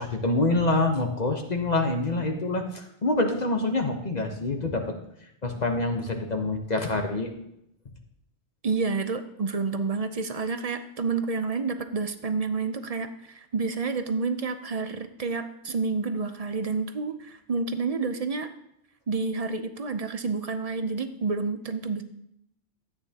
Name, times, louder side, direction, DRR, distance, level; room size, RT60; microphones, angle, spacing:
voice 1, 0.0-5.0 5.4-7.3, left 2 dB, 40° left, 3 dB, 1.0 m, -26 dB
voice 2, 8.6-18.5 19.1-22.0, right 4 dB, 40° right, 9 dB, 0.5 m, -29 dB
13.5 x 9.0 x 2.8 m, 0.77 s
omnidirectional pair, 1.2 m